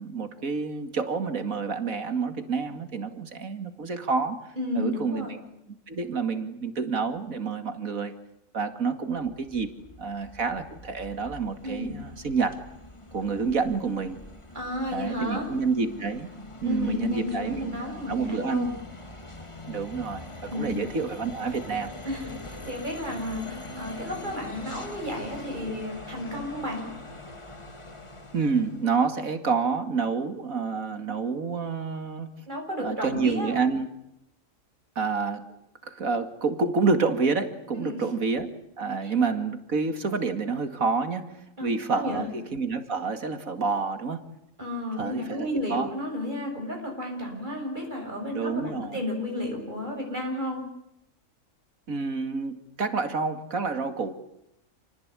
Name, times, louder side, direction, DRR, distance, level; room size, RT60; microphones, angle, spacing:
voice 1, 0.0-5.4 5.9-8.1 8.5-9.7 10.0-12.6 13.1-14.2 14.9-16.3 16.6-18.7 19.7-21.9 28.3-32.5 32.8-33.9 35.0-35.5 35.8-44.3 45.0-45.9 48.3-49.0 51.9-54.1, right 4 dB, 85° right, 9 dB, 2.7 m, -28 dB
voice 2, 4.6-5.3 11.6-12.0 14.5-15.5 16.6-18.7 20.5-20.8 22.0-26.9 32.5-33.6 37.8-38.0 39.0-39.1 41.6-42.3 44.6-50.6, left 1 dB, 35° right, 1 dB, 8.1 m, -32 dB
sound 1, 9.2-28.9, left 2 dB, 20° left, 2.2 m, -43 dB
29.5 x 19.5 x 9.9 m, 0.81 s
omnidirectional pair, 1.4 m